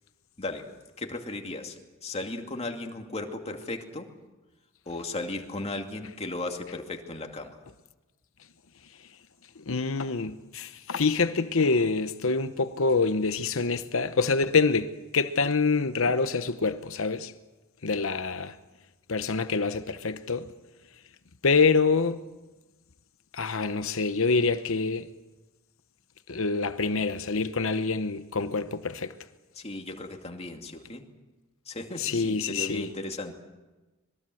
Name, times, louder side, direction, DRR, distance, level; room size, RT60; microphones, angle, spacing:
voice 1, 0.4-0.7 1.0-4.1 4.9-7.6 29.6-31.0 31.7-33.3, left 2 dB, 30° left, 2.5 m, -36 dB
voice 2, 9.6-17.3 17.8-18.6 19.1-20.5 21.4-22.2 23.3-25.1 26.3-29.1 32.0-32.9, left 4 dB, 65° left, 1.0 m, -26 dB
25.5 x 21.5 x 7.8 m
head